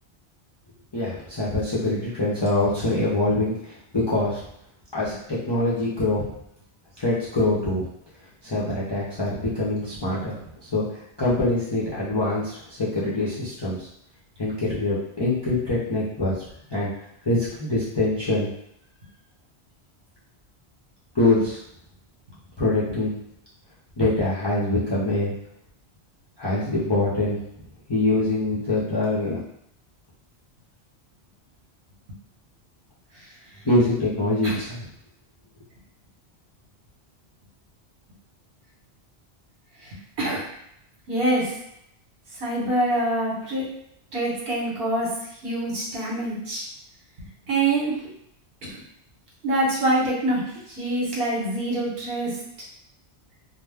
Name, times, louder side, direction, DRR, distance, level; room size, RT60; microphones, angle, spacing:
voice 1, 0.9-4.4 4.9-6.2 7.0-7.8 8.4-10.4 10.7-10.8 11.2-13.9 14.4-16.5 16.7-16.9 17.3-18.5 21.1-21.6 22.6-23.1 24.0-25.3 26.4-27.4 27.9-29.4 33.6-34.9, left 2 dB, 35° left, -8 dB, 0.5 m, -24 dB
voice 2, 39.8-40.4 41.1-41.5 42.4-43.7 44.1-45.1 45.4-46.7 47.5-48.0 48.6-48.8 49.4-52.4, right 1 dB, 60° right, -5 dB, 1.1 m, -25 dB
2.2 x 2.1 x 3.3 m, 0.74 s
omnidirectional pair, 1.1 m